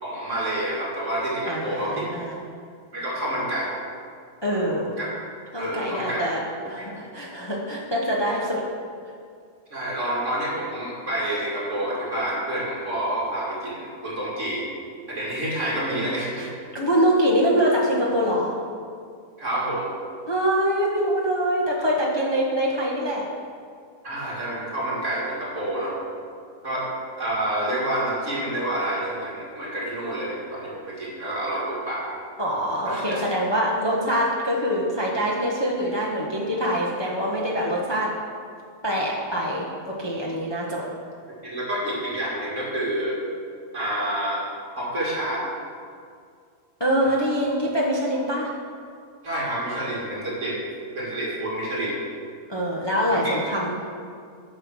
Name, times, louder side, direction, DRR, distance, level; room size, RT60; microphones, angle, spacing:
voice 1, 0.0-2.1 2.9-3.8 4.7-5.1 5.6-6.7 9.7-14.7 15.1-16.5 19.4-19.9 21.8-21.9 24.0-26.0 26.6-26.9 27.2-32.0 32.9-33.2 41.4-43.2 43.7-44.4 44.8-45.5 47.0-47.3 49.2-50.6 50.9-52.0 53.1-53.3, right 1 dB, 60° right, -6 dB, 2.7 m, -28 dB
voice 2, 1.5-2.4 4.4-4.9 5.5-6.4 6.7-8.6 16.4-16.5 16.7-18.6 20.3-23.3 32.4-38.1 38.8-40.8 46.8-48.5 52.5-53.8, equal, 20° left, -4 dB, 1.0 m, -24 dB
9.4 x 5.6 x 6.3 m, 2.2 s
omnidirectional pair, 1.5 m